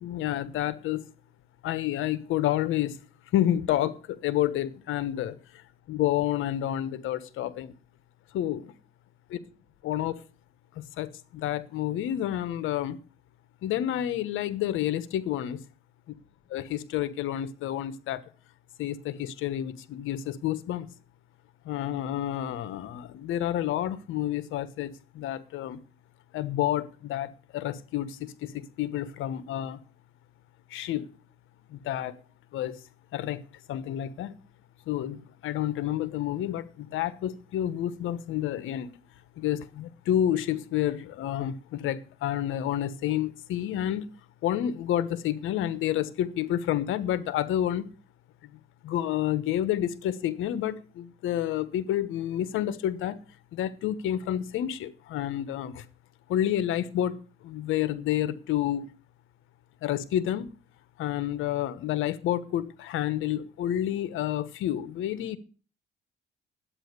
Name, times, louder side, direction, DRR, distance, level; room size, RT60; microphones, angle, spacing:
voice 1, 0.0-1.1 1.6-3.0 3.3-7.7 8.3-8.7 9.3-9.4 9.8-10.2 10.7-13.0 13.6-15.6 16.5-18.2 18.8-20.9 21.6-25.8 26.3-29.8 30.7-31.1 31.7-32.1 32.5-32.8 33.1-34.3 34.9-38.9 39.4-44.1 44.4-47.9 48.4-53.2 53.5-55.8 56.3-57.2 57.4-58.9 59.8-60.5 61.0-65.4, left 12 dB, 90° left, 1.2 m, -29 dB
11.5 x 9.0 x 6.7 m
cardioid pair, 90°, 20 cm